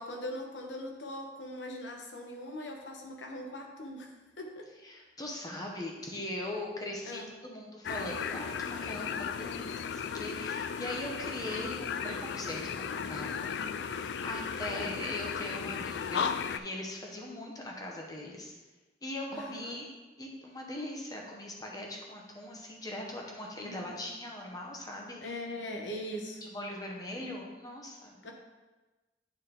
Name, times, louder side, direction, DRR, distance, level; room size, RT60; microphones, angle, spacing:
voice 1, 0.0-4.7 7.0-7.3 14.6-15.0 19.3-19.8 23.6-24.1 25.2-26.4 28.2-28.3, left 1 dB, 85° left, 2 dB, 1.0 m, -41 dB
voice 2, 4.8-13.5 13.9-18.5 19.0-19.9 20.2-25.4 26.4-28.3, left 1 dB, 20° left, 0 dB, 1.0 m, -40 dB
sound 1, 7.8-16.6, left 6 dB, 65° left, 0.3 m, -35 dB
8.9 x 4.2 x 3.6 m, 1.2 s
head